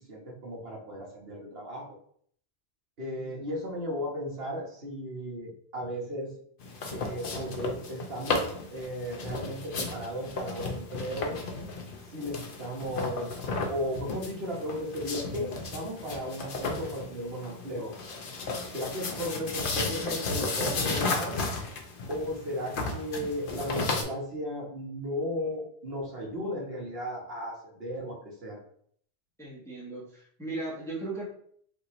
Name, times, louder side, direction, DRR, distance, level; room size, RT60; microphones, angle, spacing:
voice 1, 0.1-2.0 3.0-6.3 6.9-11.4 12.1-13.3 13.6-17.9 18.7-21.4 22.1-28.6, equal, 65° right, -2 dB, 1.4 m, -35 dB
sound 1, 6.6-24.0, left 3 dB, 55° left, 0.8 m, -34 dB
voice 2, 29.4-31.2, right 2 dB, 5° left, -6 dB, 1.0 m, -37 dB
5.1 x 2.8 x 3.0 m, 0.62 s
omnidirectional pair, 1.1 m